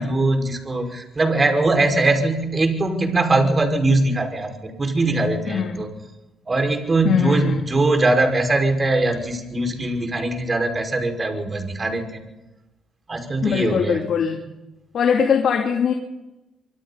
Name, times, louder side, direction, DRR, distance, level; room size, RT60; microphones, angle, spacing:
voice 1, 0.0-5.9 6.5-12.2 13.1-14.0, right 2 dB, 30° right, 4 dB, 5.5 m, -21 dB
voice 2, 5.5-5.8 7.0-7.7 13.4-14.4 14.9-15.9, left 7 dB, 65° left, 1 dB, 3.1 m, -21 dB
26.0 x 24.5 x 4.2 m, 0.98 s
cardioid pair, 90°, 0 cm